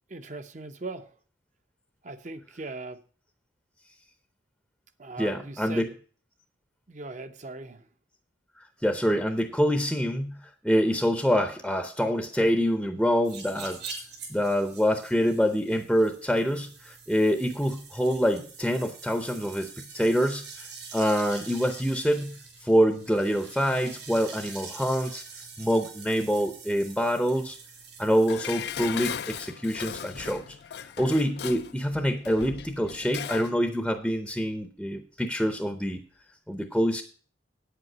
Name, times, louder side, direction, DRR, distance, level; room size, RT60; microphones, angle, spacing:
voice 1, 0.1-1.1 2.0-3.0 5.0-5.9 6.9-7.9, right 2 dB, 40° right, 0.8 m, -39 dB
voice 2, 5.2-5.9 8.6-10.4 10.6-13.8 14.3-25.2 25.6-27.6 28.0-30.4 30.8-36.0 36.5-37.0, equal, ahead, 0.7 m, -26 dB
sound 1, 13.2-28.3, right 4 dB, 65° right, 4.0 m, -45 dB
Dishes pots and pans, 28.3-33.6 33.9-34.0, left 8 dB, 60° left, 0.4 m, -37 dB
8.7 x 8.1 x 6.1 m
head